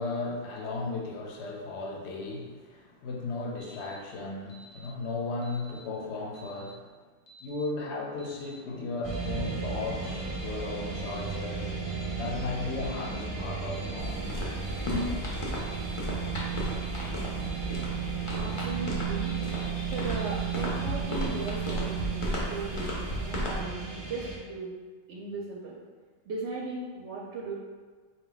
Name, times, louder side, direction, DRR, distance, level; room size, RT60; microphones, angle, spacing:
voice 1, 0.0-6.8 7.4-14.3 14.8-15.1, left 3 dB, 60° left, 0 dB, 0.9 m, -35 dB
Alarm, 3.6-3.9 4.5-4.9 5.4-5.8 6.3-6.7 7.3-7.6 8.2-8.5 9.1-9.5 10.0-10.4 10.9-11.3 11.9-12.2 12.8-13.1 13.7-14.1 14.6-15.0 15.6-15.9 16.5-16.8 17.4-17.8 18.3-18.7 19.2-19.6 20.2-20.5 21.1-21.4, right 3 dB, 85° left, 1.2 m, -53 dB
sound 1, 9.0-24.4, right 5 dB, 40° right, 0.5 m, -34 dB
sound 2, 14.0-23.6, equal, 35° left, 0.5 m, -35 dB
voice 2, 18.3-19.4 19.9-24.7 25.1-25.8 26.3-27.6, right 3 dB, 65° right, -3 dB, 0.8 m, -37 dB
3.9 x 2.3 x 3.8 m, 1.5 s
omnidirectional pair, 1.4 m